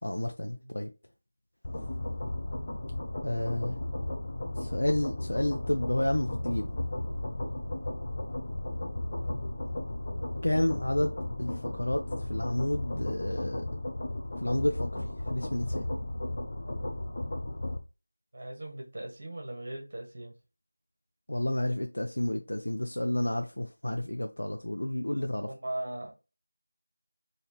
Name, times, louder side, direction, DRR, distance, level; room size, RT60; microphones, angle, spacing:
voice 1, 0.0-0.9 3.2-3.8 4.6-6.7 10.4-13.7 14.4-15.9 21.3-25.5, left 1 dB, 85° left, 0.7 m, -30 dB
sound 1, 1.6-17.8, left 1 dB, 25° left, 0.6 m, -35 dB
voice 2, 18.3-20.3 25.4-26.1, right 1 dB, 25° right, 1.1 m, -39 dB
5.7 x 2.8 x 2.9 m
figure-of-eight pair, 180°, 0 cm